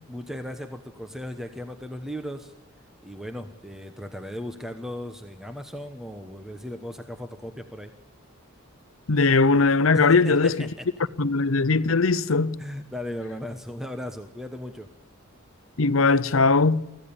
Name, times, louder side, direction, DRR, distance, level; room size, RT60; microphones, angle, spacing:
voice 1, 0.1-2.5 3.0-7.9 9.9-10.9 12.6-14.9, left 1 dB, ahead, 1.0 m, -36 dB
voice 2, 9.1-10.7 11.2-12.6 15.8-16.8, left 3 dB, 75° left, 0.8 m, -20 dB
24.0 x 15.5 x 7.1 m
head